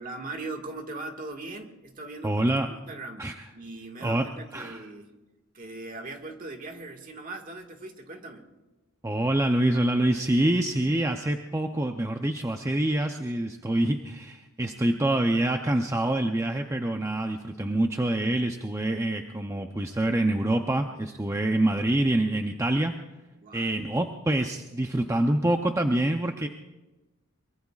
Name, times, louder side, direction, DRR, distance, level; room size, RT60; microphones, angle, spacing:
voice 1, 0.0-2.5 2.9-5.1 5.5-8.5 23.4-23.8, right 2 dB, 40° right, 3 dB, 1.8 m, -40 dB
voice 2, 2.2-2.7 3.2-3.3 4.0-4.3 4.5-4.8 9.0-22.9 23.5-26.5, right 1 dB, 15° right, 4 dB, 0.6 m, -26 dB
23.0 x 22.5 x 2.4 m, 1.1 s
head